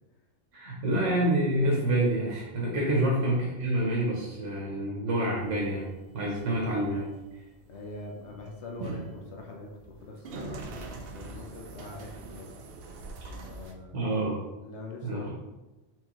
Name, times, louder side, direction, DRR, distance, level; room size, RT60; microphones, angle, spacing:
voice 1, 0.5-5.9 6.1-7.1 13.9-14.4 15.0-15.2, right 1 dB, 80° right, -2 dB, 1.2 m, -27 dB
sound 1, 5.4-13.7, right 3 dB, 60° right, 0.7 m, -43 dB
voice 2, 7.7-12.5 13.4-14.1 14.6-15.3, left 3 dB, 70° left, 1 dB, 1.0 m, -43 dB
4.7 x 3.7 x 3.0 m, 1.1 s
omnidirectional pair, 1.2 m